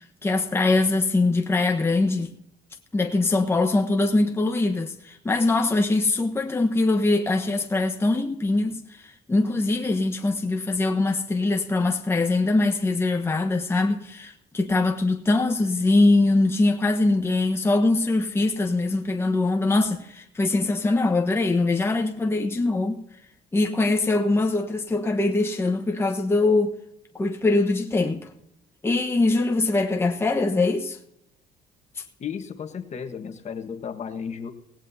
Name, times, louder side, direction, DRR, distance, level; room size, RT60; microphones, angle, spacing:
voice 1, 0.0-2.3 2.9-23.0 23.5-26.7 27.1-28.3 28.8-31.0, left 2 dB, 15° left, 1.2 m, -22 dB
voice 2, 32.2-34.5, left 7 dB, 40° left, 1.4 m, -34 dB
18.0 x 16.5 x 2.8 m
cardioid pair, 110°, 17 cm